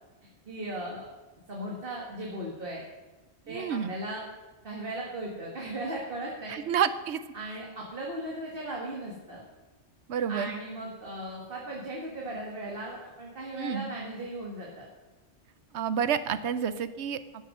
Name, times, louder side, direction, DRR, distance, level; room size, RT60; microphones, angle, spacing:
voice 1, 0.5-1.1 1.5-2.8 3.5-4.2 4.6-6.6 7.3-9.4 10.3-14.9, right 1 dB, 55° right, -3 dB, 2.0 m, -37 dB
voice 2, 3.5-3.9 6.5-7.2 10.1-10.5 13.6-13.9 15.7-17.2, right 8 dB, 75° right, 13 dB, 1.0 m, -29 dB
12.5 x 7.4 x 6.6 m, 1.2 s
omnidirectional pair, 1.2 m